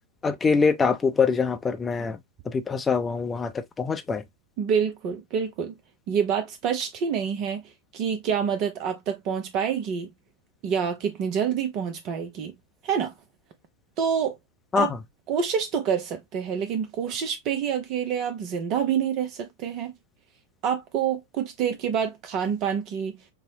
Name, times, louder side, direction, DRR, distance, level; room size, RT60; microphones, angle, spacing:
voice 1, 0.2-2.2 2.5-4.2 14.7-15.0, left 5 dB, 15° left, 0.6 m, -24 dB
voice 2, 4.6-5.7 6.1-10.1 10.6-12.5 12.8-13.1 14.0-14.4 14.8-14.9 15.3-19.9 20.6-23.2, right 7 dB, 40° right, 0.5 m, -27 dB
5.3 x 2.0 x 2.7 m
figure-of-eight pair, 90°, 0 cm